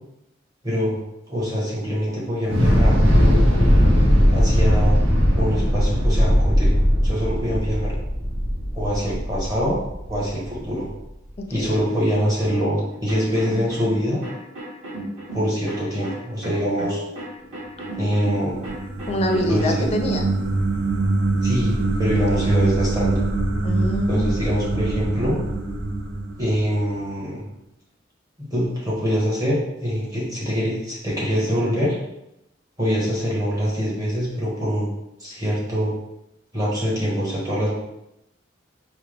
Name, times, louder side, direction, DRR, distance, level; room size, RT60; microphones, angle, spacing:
voice 1, 0.6-1.0 1.3-3.0 4.3-5.0 5.3-8.0 8.7-9.8 10.1-10.9 11.5-14.2 15.3-17.0 18.0-18.6 19.5-19.9 21.4-23.2 24.1-25.4 26.4-27.4 28.4-32.0 32.8-34.9 35.2-35.9 36.5-37.7, equal, 20° right, -6 dB, 1.2 m, -24 dB
Thunder / Explosion, 2.5-10.7, equal, 85° right, 0.8 m, -18 dB
voice 2, 11.4-11.8 19.1-20.3 22.3-22.5 23.6-24.4, left 1 dB, 35° left, 3 dB, 0.4 m, -26 dB
sound 1, 13.1-19.6, right 1 dB, 40° right, 1.3 m, -33 dB
sound 2, 17.8-27.1, right 2 dB, 70° right, 0.5 m, -24 dB
4.5 x 2.1 x 3.3 m, 0.87 s
head